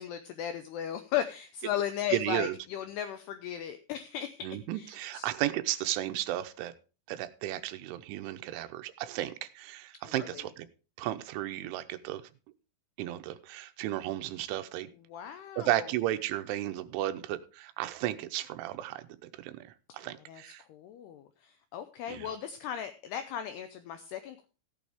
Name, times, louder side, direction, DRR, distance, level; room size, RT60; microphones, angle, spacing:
voice 1, 0.0-4.5 4.7-5.3 10.1-10.4 15.1-15.9 20.3-24.5, left 10 dB, 85° left, 10 dB, 2.3 m, -36 dB
voice 2, 2.1-2.6 4.4-6.7 7.1-10.7 11.0-12.2 13.0-14.9 15.3-20.6 22.1-22.3, right 14 dB, 80° right, 10 dB, 3.1 m, -34 dB
15.5 x 8.9 x 3.5 m, 0.34 s
omnidirectional pair, 5.5 m